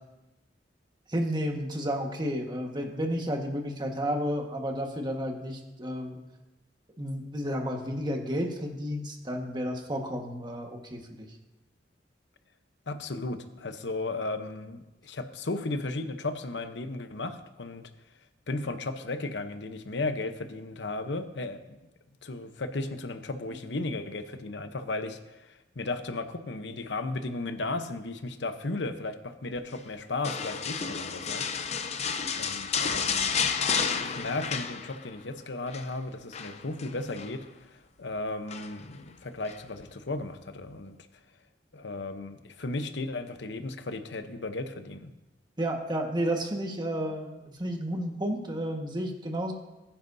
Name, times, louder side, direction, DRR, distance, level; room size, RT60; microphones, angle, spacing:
voice 1, 1.1-6.2 7.0-11.3 45.6-49.5, equal, 25° right, 2 dB, 1.5 m, -32 dB
voice 2, 12.9-17.9 18.5-21.6 22.2-25.2 25.5-31.4 32.4-37.4 37.7-40.9 41.7-45.1, left 2 dB, 85° left, 8 dB, 0.9 m, -35 dB
sound 1, 30.2-35.3 35.5-35.9 36.3-37.4 38.5-38.9 39.5-39.6, left 6 dB, 40° left, 0.6 m, -31 dB
20.0 x 10.0 x 2.7 m, 1.0 s
head